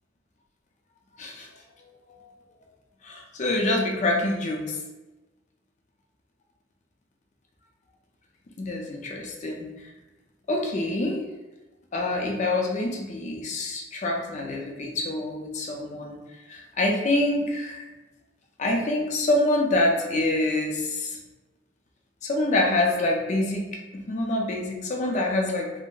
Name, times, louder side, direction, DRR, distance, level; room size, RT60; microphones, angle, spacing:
voice 1, 1.9-2.3 3.0-4.8 8.6-9.7 10.5-11.2 11.9-16.2 16.5-17.9 18.6-21.2 22.2-25.7, left 2 dB, 40° left, 1 dB, 0.5 m, -26 dB
3.6 x 2.0 x 2.5 m, 1.1 s
head